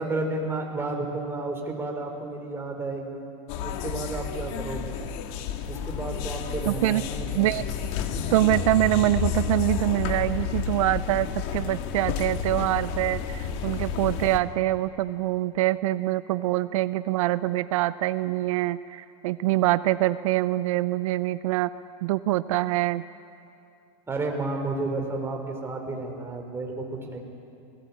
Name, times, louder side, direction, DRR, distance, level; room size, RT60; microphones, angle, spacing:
voice 1, 0.0-3.2 3.6-5.1 5.7-7.6 24.1-27.2, right 2 dB, 15° right, 2 dB, 4.1 m, -32 dB
sound 1, 3.5-14.4, left 8 dB, 60° left, 1.8 m, -31 dB
voice 2, 6.7-7.0 7.4-7.6 8.3-21.7 22.0-23.0, right 16 dB, 80° right, 15 dB, 0.6 m, -25 dB
26.5 x 19.0 x 8.7 m, 2.6 s
supercardioid pair, 135°, 17 cm